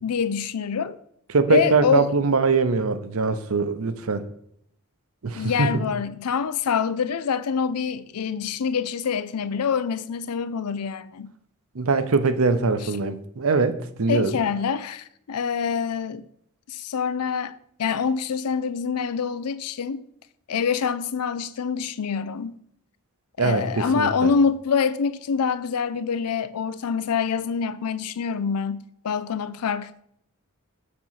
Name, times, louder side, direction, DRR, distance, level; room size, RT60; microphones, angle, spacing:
voice 1, 0.0-1.0 1.5-2.1 5.4-11.3 12.8-12.9 14.1-16.2 16.7-17.5 17.8-20.0 20.5-22.6 23.4-30.0, left 6 dB, 90° left, 0.5 m, -25 dB
voice 2, 1.3-4.3 5.2-5.7 11.7-14.4 23.4-24.3, right 4 dB, 65° right, 0.7 m, -22 dB
7.6 x 4.2 x 5.7 m
head